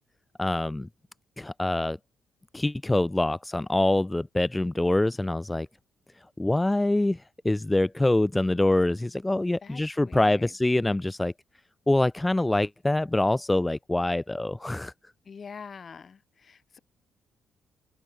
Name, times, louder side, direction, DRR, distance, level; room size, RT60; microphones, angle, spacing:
voice 1, 0.4-0.9 1.4-2.0 2.5-5.7 6.4-11.3 11.9-14.9, left 2 dB, 10° left, 0.3 m, -25 dB
voice 2, 9.6-10.6 15.2-16.8, left 6 dB, 40° left, 4.0 m, -45 dB
open air
cardioid pair, 90°, 0 cm